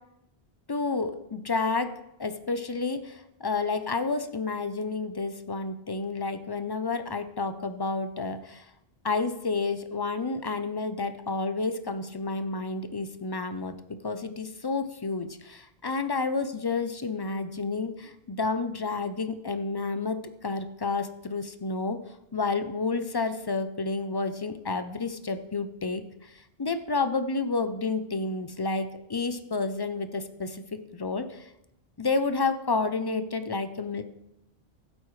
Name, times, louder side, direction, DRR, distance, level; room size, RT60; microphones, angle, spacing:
voice 1, 0.7-1.9 2.2-8.6 9.0-13.7 14.0-22.0 22.3-31.5 32.0-34.0, left 3 dB, 30° left, 10 dB, 0.5 m, -30 dB
15.0 x 8.4 x 3.2 m, 0.85 s
omnidirectional pair, 1.1 m